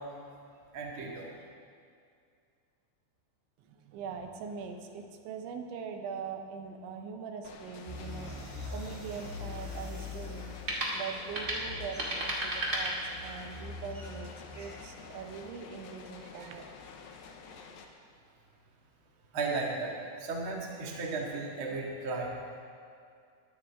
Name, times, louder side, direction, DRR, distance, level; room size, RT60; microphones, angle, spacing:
voice 1, 0.7-1.3 19.3-19.9 20.2-22.3, right 3 dB, 55° right, -2 dB, 1.4 m, -35 dB
voice 2, 3.6-8.3 8.7-10.6 10.9-13.0 13.2-16.7, right 6 dB, 80° right, 4 dB, 3.2 m, -42 dB
sound 1, 7.4-17.9, left 5 dB, 75° left, 2.2 m, -50 dB
sound 2, 7.9-15.5, left 3 dB, 15° right, 1.0 m, -44 dB
sound 3, 8.5-13.6, right 1 dB, 35° right, 1.6 m, -37 dB
21.5 x 12.5 x 3.6 m, 2.3 s
omnidirectional pair, 5.5 m